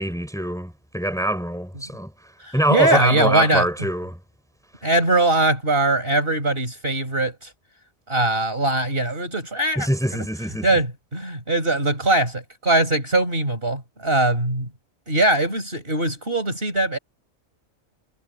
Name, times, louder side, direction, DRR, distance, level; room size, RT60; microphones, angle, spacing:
voice 1, 0.0-2.1 2.5-4.2 9.8-10.7, right 1 dB, ahead, 4.2 m, -24 dB
voice 2, 2.4-3.7 4.8-7.3 8.1-9.9 10.1-10.2 10.6-14.7 15.1-17.0, right 2 dB, 40° right, 6.1 m, -21 dB
omnidirectional pair, 1.4 m